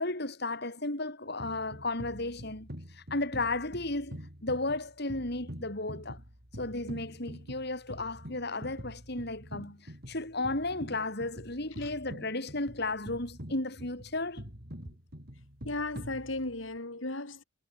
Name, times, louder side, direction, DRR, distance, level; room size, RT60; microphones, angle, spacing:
voice 1, 0.0-2.7 2.9-6.2 6.6-14.4, left 2 dB, 60° left, 5.9 m, -34 dB
sound 1, 1.4-16.8, equal, 55° right, 7.6 m, -46 dB
voice 2, 15.6-17.4, left 2 dB, 85° left, 4.3 m, -36 dB
head